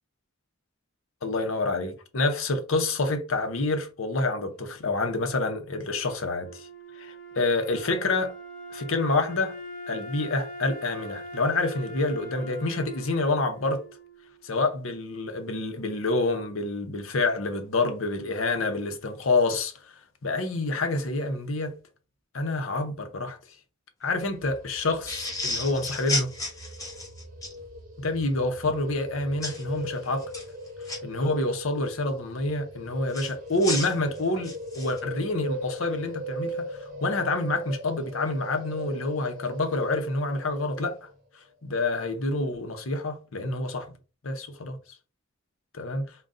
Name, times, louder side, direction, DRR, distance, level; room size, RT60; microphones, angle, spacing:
voice 1, 1.2-6.7 7.0-8.3 8.7-9.6 9.9-13.8 14.4-21.8 22.3-23.4 24.0-26.3 28.0-30.2 31.0-41.1 41.3-43.9 44.2-44.8 45.8-46.0, left 2 dB, 80° left, 0.8 m, -28 dB
Wind instrument woodwind instrument, 5.7-14.7, equal, 40° left, 1.2 m, -42 dB
sound 1, 24.2-41.2, equal, 40° right, 0.7 m, -40 dB
sound 2, 25.1-27.5 29.4-29.6 30.2-31.0 33.1-35.0, left 2 dB, 15° left, 1.1 m, -32 dB
3.9 x 2.3 x 3.7 m
head